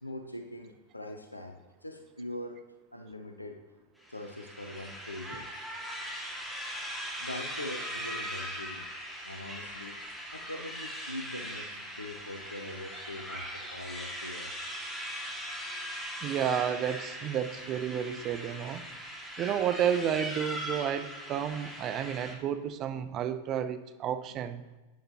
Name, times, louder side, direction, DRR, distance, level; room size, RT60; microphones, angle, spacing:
voice 1, 0.0-2.6 2.9-3.6 4.1-5.5 7.2-8.9 9.2-10.0 10.3-14.6, left 1 dB, 85° left, 6 dB, 0.8 m, -42 dB
sound 1, 4.0-22.3, equal, ahead, 2.1 m, -40 dB
voice 2, 16.2-18.8 19.4-24.6, right 9 dB, 35° right, 11 dB, 0.7 m, -31 dB
11.5 x 9.2 x 3.0 m, 1.2 s
figure-of-eight pair, 90°, 0 cm